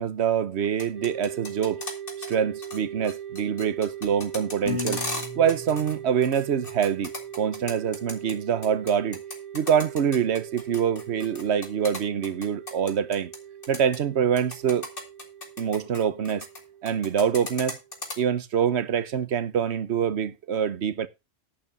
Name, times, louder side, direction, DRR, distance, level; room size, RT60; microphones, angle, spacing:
voice 1, 0.0-1.8 2.3-5.0 5.4-9.2 9.5-13.3 13.7-14.9 15.6-16.5 16.8-17.8 18.2-21.1, right 8 dB, 60° right, 1.1 m, -25 dB
sound 1, 0.6-2.3 2.6-2.8 3.0-5.9 6.2-8.3 8.6-13.4 13.6-14.0 14.4-16.6 16.9-18.2, left 2 dB, 40° left, 2.6 m, -36 dB
sound 2, 0.9-18.3, right 9 dB, 30° right, 2.6 m, -41 dB
Piano, 4.7-6.9, left 3 dB, 65° left, 2.6 m, -36 dB
11.0 x 5.0 x 6.8 m
omnidirectional pair, 1.4 m